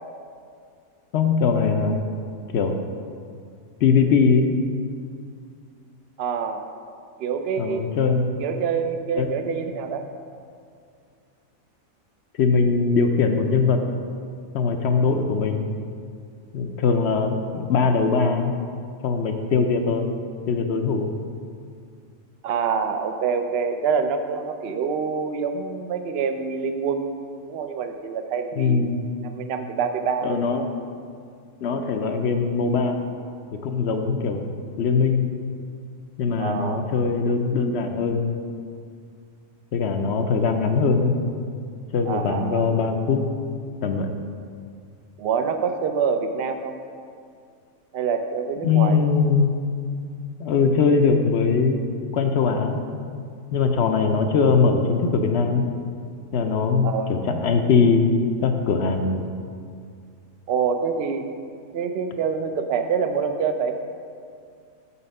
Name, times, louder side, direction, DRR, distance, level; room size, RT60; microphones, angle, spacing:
voice 1, 1.1-2.0 2.5-2.8 3.8-4.5 7.6-8.3 9.2-9.3 12.4-13.8 14.5-15.7 16.5-18.5 19.0-20.1 20.5-21.1 28.6-29.0 30.2-30.7 31.6-33.0 33.6-34.5 34.8-35.3 36.2-38.3 39.7-41.1 41.9-43.2 43.8-44.1 48.6-49.6 50.4-51.8 52.1-52.8 53.5-55.7 56.3-59.3, left 5 dB, 65° left, 5 dB, 0.7 m, -21 dB
voice 2, 6.2-6.6 7.2-7.9 8.4-10.1 22.4-28.9 29.2-30.7 36.4-36.9 42.1-42.7 45.2-46.8 47.9-49.1 56.8-57.1 60.5-61.3 61.7-63.7, right 6 dB, 65° right, 7 dB, 0.6 m, -26 dB
6.6 x 5.6 x 5.3 m, 2.3 s
omnidirectional pair, 1.5 m